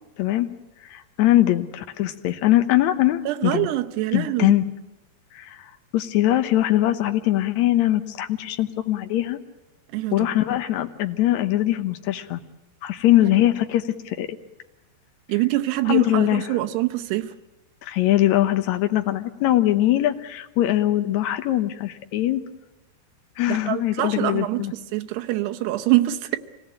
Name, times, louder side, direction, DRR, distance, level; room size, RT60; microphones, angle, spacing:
voice 1, 0.2-0.5 0.8-3.7 4.1-4.6 5.3-9.4 10.1-12.4 12.8-14.4 15.9-16.6 17.8-22.4 23.4-24.7, left 14 dB, 90° left, 1.6 m, -21 dB
voice 2, 3.3-4.5 9.9-10.3 15.3-17.3 23.5-26.4, right 16 dB, 85° right, 3.1 m, -24 dB
26.0 x 18.0 x 8.8 m
omnidirectional pair, 4.7 m